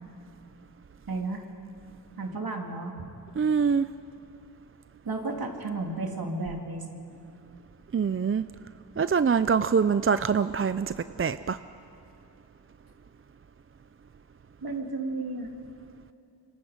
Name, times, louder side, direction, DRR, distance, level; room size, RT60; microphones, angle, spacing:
voice 1, 1.1-1.4 2.2-3.1 5.0-7.0 14.6-15.5, right 3 dB, 65° right, 1 dB, 2.9 m, -33 dB
voice 2, 3.4-3.9 7.9-8.5 9.0-11.6, right 6 dB, 35° right, 13 dB, 0.5 m, -24 dB
26.5 x 24.0 x 5.2 m, 2.7 s
cardioid pair, 45°, 39 cm